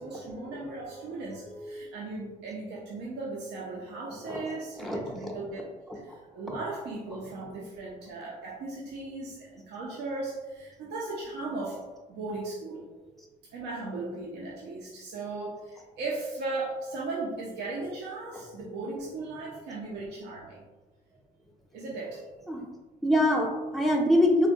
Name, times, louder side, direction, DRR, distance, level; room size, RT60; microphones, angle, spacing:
voice 1, 0.0-5.7 6.0-11.8 12.1-12.9 13.5-20.6 21.7-22.3, right 3 dB, 80° right, -4 dB, 0.6 m, -37 dB
voice 2, 1.6-1.9 4.3-4.4 4.8-5.4 6.5-6.6 22.5-22.6 23.0-24.5, left 1 dB, ahead, 1 dB, 0.5 m, -25 dB
3.4 x 2.2 x 2.7 m, 1.2 s
cardioid pair, 110°, 17 cm